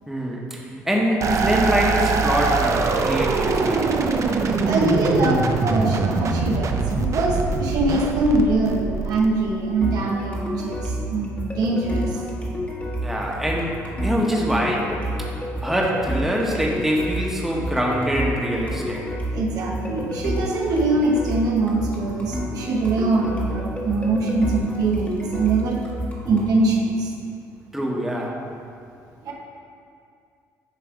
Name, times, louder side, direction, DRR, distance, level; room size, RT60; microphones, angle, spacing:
voice 1, 0.1-0.6 0.8-4.1 13.0-15.3 15.6-19.0 27.7-28.4, equal, 5° right, -2 dB, 1.4 m, -24 dB
sound 1, 1.2-9.7, right 4 dB, 50° right, 0.6 m, -23 dB
voice 2, 4.5-12.2 19.3-25.8 26.3-27.1 29.2-29.3, right 2 dB, 65° right, -1 dB, 1.0 m, -23 dB
sound 2, 9.8-26.5, equal, 20° left, 1.5 m, -29 dB
9.3 x 3.4 x 5.1 m, 2.4 s
supercardioid pair, 70°, 7 cm